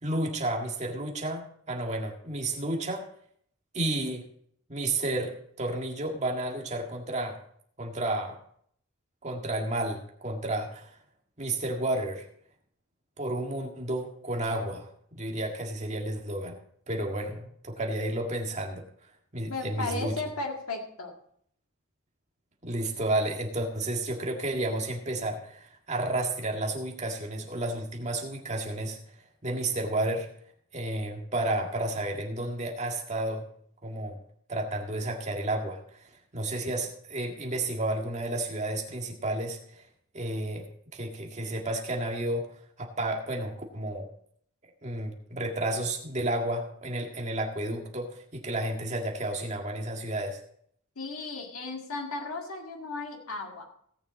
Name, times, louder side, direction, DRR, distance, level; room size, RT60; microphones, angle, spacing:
voice 1, 0.0-3.1 3.7-4.2 4.7-7.4 7.8-8.4 9.2-10.9 11.4-12.3 13.2-16.6 16.9-18.8 19.3-20.1 22.6-29.2 29.4-30.3 30.7-33.5 33.8-34.2 34.5-39.9 40.1-40.6 40.9-42.5 42.8-44.1 44.8-50.4, right 1 dB, 30° right, 0 dB, 1.8 m, -31 dB
voice 2, 19.5-21.1 51.0-53.6, left 3 dB, 85° left, 2 dB, 1.9 m, -35 dB
17.5 x 7.0 x 4.0 m, 0.65 s
head